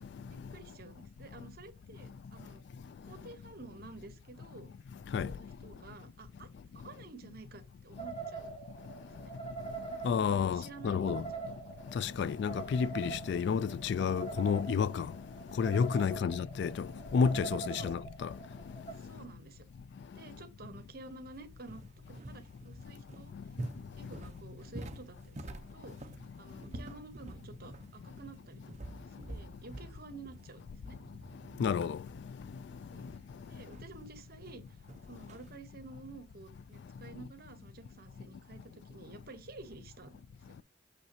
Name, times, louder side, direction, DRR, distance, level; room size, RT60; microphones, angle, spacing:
voice 1, 0.2-2.6 3.0-4.7 5.2-6.5 6.7-8.5 9.2-9.3 10.3-11.0 11.3-11.4 12.2-12.4 16.0-16.3 17.8-17.9 18.9-19.6 20.1-21.8 22.1-23.3 24.0-26.1 26.4-28.6 29.0-31.0 32.9-33.1 33.5-34.8 35.0-40.2, right 3 dB, 55° right, 1.0 m, -51 dB
sound 1, 8.0-18.9, right 5 dB, 35° left, 1.8 m, -44 dB
voice 2, 10.0-11.2 12.0-15.1 15.6-16.9 17.1-18.3 31.6-32.0, left 6 dB, 65° left, 0.3 m, -30 dB
sound 2, 21.3-35.6, right 1 dB, 40° right, 0.7 m, -48 dB
6.7 x 5.7 x 2.8 m
head